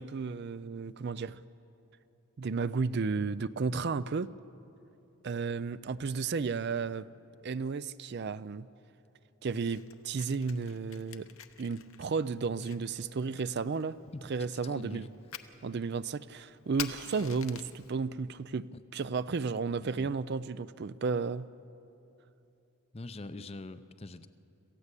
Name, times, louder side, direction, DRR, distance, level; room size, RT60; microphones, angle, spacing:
voice 1, 0.0-1.4 2.4-4.3 5.2-7.1 7.4-8.7 9.4-11.3 11.6-13.9 14.3-15.1 15.6-21.5, right 4 dB, 50° right, 16 dB, 0.4 m, -33 dB
Fire, 9.5-17.9, left 9 dB, 65° left, 0.9 m, -48 dB
voice 2, 14.5-15.1 15.6-15.7 18.7-18.8 19.8-20.1 22.9-24.3, left 2 dB, 25° left, 12 dB, 0.6 m, -44 dB
26.5 x 15.5 x 8.3 m, 2.8 s
head